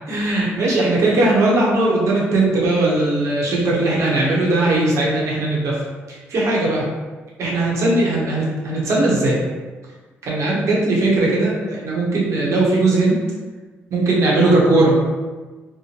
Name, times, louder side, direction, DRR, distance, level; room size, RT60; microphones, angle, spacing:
voice 1, 0.1-5.8 6.1-6.9 7.4-9.4 10.2-13.2 13.9-15.1, right 2 dB, 70° right, -4 dB, 0.9 m, -18 dB
2.8 x 2.1 x 2.9 m, 1.3 s
supercardioid pair, 55°, 5 cm